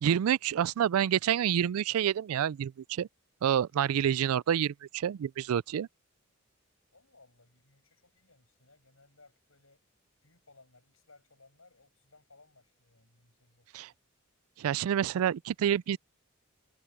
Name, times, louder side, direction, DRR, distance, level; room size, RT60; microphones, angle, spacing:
voice 1, 0.0-3.1 3.4-5.9 13.7-13.9 14.6-16.0, right 9 dB, 90° right, 0.3 m, -28 dB
voice 2, 6.9-9.8 10.2-14.0, left 3 dB, 75° left, 7.6 m, -62 dB
head